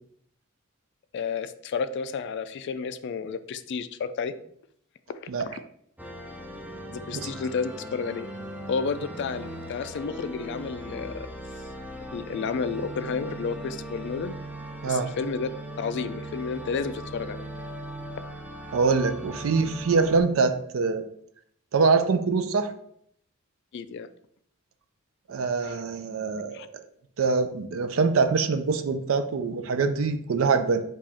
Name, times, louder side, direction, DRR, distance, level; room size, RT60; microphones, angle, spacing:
voice 1, 1.1-4.3 5.4-5.6 6.9-8.3 8.7-11.3 12.1-14.4 14.9-15.5 15.8-17.5 23.7-24.1 25.6-25.8 26.5-26.7, left 5 dB, 55° left, 12 dB, 0.3 m, -31 dB
sound 1, 6.0-20.2, right 1 dB, 5° right, 0.5 m, -39 dB
voice 2, 18.7-21.0 21.7-22.7 25.3-26.8 27.2-30.8, right 4 dB, 70° right, 9 dB, 0.4 m, -24 dB
4.8 x 2.4 x 4.1 m, 0.68 s
head